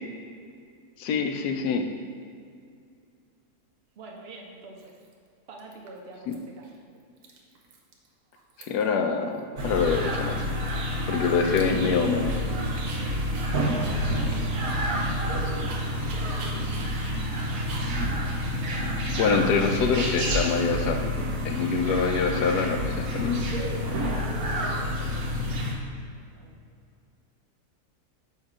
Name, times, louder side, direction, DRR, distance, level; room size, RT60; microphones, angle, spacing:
voice 1, 1.0-1.9 6.3-6.4 8.6-10.4 11.1-12.4 18.8-18.9 19.2-21.0 21.4-23.5, left 5 dB, 85° left, 6 dB, 1.1 m, -25 dB
voice 2, 4.0-4.9 5.5-6.7 12.7-15.7 16.3-16.9 24.1-25.8 26.0-26.6, right 3 dB, 50° right, 0 dB, 0.8 m, -48 dB
Dog, 4.0-4.1 4.8-5.3 5.6-6.3 6.6-6.8 7.0-8.1 8.3-9.0 9.3-9.4 9.8-12.4 12.8-19.4, right 3 dB, 85° right, 1.3 m, -46 dB
sound 1, 9.6-25.7, equal, 70° right, 1.3 m, -28 dB
7.1 x 2.9 x 4.7 m, 2.3 s
omnidirectional pair, 1.7 m